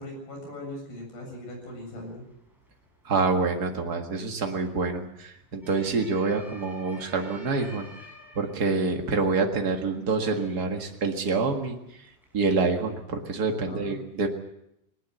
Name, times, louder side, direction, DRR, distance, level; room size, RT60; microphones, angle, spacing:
voice 1, 0.0-2.3 13.6-14.0, left 1 dB, 65° left, 2 dB, 9.3 m, -39 dB
sound 1, 1.6-12.9, left 1 dB, ahead, 7.0 m, -53 dB
voice 2, 3.0-8.1 8.3-12.1 12.3-14.3, right 4 dB, 75° right, 3 dB, 0.8 m, -27 dB
20.5 x 19.5 x 7.9 m, 0.80 s
omnidirectional pair, 4.8 m